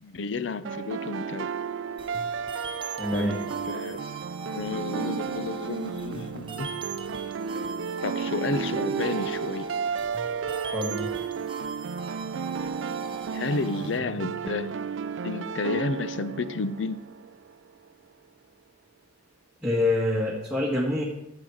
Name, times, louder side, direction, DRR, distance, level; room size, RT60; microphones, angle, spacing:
voice 1, 0.0-1.5 3.1-4.2 4.5-6.7 8.0-9.7 13.3-14.7 15.2-17.0, left 4 dB, 80° left, 0.6 m, -31 dB
sound 1, 0.6-17.5, right 6 dB, 85° right, 0.4 m, -33 dB
sound 2, 2.0-14.0, right 4 dB, 30° right, 0.8 m, -41 dB
voice 2, 3.0-3.4 10.7-11.1 19.6-21.0, left 1 dB, 5° right, 1.6 m, -26 dB
13.0 x 7.6 x 4.9 m
head